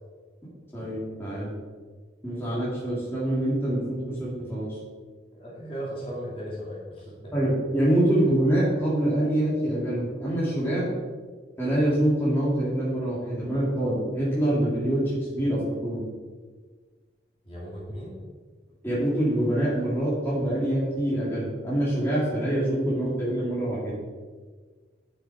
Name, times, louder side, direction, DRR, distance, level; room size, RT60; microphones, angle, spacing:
voice 1, 0.7-1.5 2.2-4.8 7.3-10.9 11.6-16.0 18.8-23.9, right 1 dB, 15° left, -8 dB, 2.4 m, -25 dB
voice 2, 5.3-7.3 17.4-18.2, equal, 30° left, -6 dB, 2.6 m, -37 dB
9.7 x 6.0 x 4.8 m, 1.5 s
head